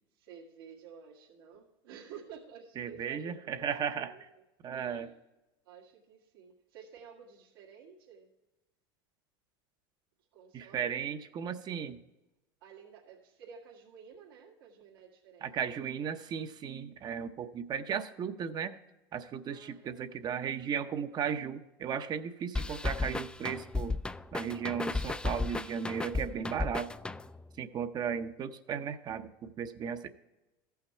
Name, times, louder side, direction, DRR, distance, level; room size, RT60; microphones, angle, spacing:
voice 1, 0.1-3.7 4.0-4.2 4.7-5.1 5.7-8.3 10.3-11.0 12.6-15.5 19.5-20.1, right 7 dB, 80° right, -2 dB, 1.8 m, -52 dB
voice 2, 2.8-4.3 4.6-5.1 10.5-12.0 15.4-18.8 19.1-23.9 24.3-26.9 27.6-30.1, right 7 dB, 35° right, 10 dB, 0.7 m, -36 dB
sound 1, 22.5-27.5, left 3 dB, 10° left, 0.3 m, -35 dB
14.0 x 5.8 x 4.4 m, 1.0 s
supercardioid pair, 105°, 12 cm